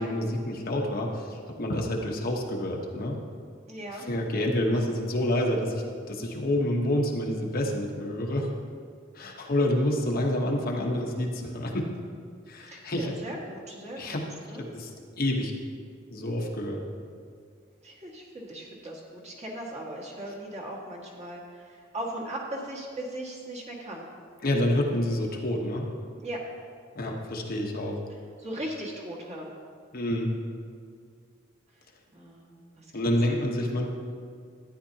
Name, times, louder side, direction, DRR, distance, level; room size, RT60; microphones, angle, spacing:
voice 1, 0.0-3.2 3.9-5.8 6.1-8.5 9.1-11.9 12.5-13.1 14.0-14.3 14.6-14.9 15.2-15.5 16.1-16.8 24.4-25.9 26.9-28.0 29.9-30.3 32.9-33.9, left 1 dB, 50° left, 0 dB, 1.0 m, -28 dB
voice 2, 3.7-4.1 12.7-14.2 14.5-14.7 17.8-24.1 26.2-26.4 28.4-29.5 32.1-32.9, right 1 dB, 35° right, -4 dB, 1.8 m, -38 dB
13.0 x 9.6 x 2.8 m, 2.1 s
head